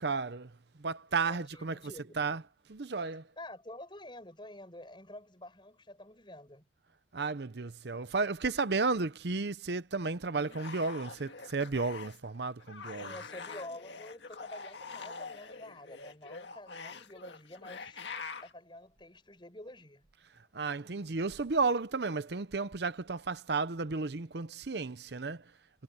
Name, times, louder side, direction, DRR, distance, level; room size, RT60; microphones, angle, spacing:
voice 1, 0.0-2.4 2.7-3.3 7.1-13.1 20.5-25.5, right 4 dB, 65° right, 0.8 m, -33 dB
voice 2, 1.1-2.1 3.4-6.7 13.0-18.0 18.4-20.1, left 1 dB, 25° left, 7.1 m, -48 dB
sound 1, 10.4-12.3 12.6-18.5, left 4 dB, 75° left, 1.9 m, -45 dB
head